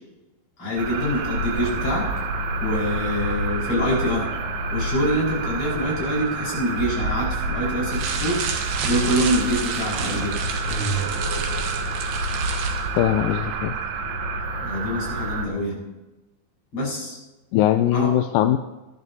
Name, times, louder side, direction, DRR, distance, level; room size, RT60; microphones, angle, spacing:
voice 1, 0.6-2.1 2.6-4.3 4.7-8.4 8.8-10.4 14.6-15.8 16.7-17.2 17.9-18.2, equal, 35° left, -5 dB, 5.6 m, -25 dB
sound 1, 0.8-15.5, right 2 dB, 65° right, 2.0 m, -28 dB
sound 2, 7.9-12.9, right 6 dB, 85° right, 3.2 m, -31 dB
sound 3, 8.2-10.3 10.7-12.5, right 4 dB, 25° right, 5.4 m, -33 dB
voice 2, 13.0-13.7 17.5-18.6, left 12 dB, 80° left, 8 dB, 2.0 m, -20 dB
21.0 x 11.0 x 2.8 m, 1.1 s
omnidirectional pair, 4.3 m